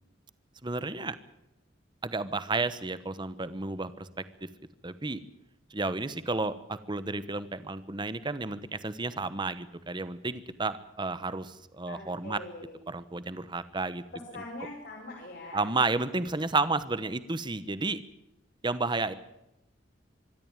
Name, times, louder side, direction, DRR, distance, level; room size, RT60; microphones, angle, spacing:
voice 1, 0.6-1.2 2.0-4.1 4.8-5.2 5.7-12.4 12.9-14.0 15.5-18.0 18.6-19.1, right 3 dB, 25° right, 14 dB, 1.0 m, -31 dB
voice 2, 11.9-12.8 14.1-15.7, left 2 dB, 55° left, -2 dB, 4.8 m, -43 dB
25.0 x 12.5 x 9.0 m, 0.92 s
head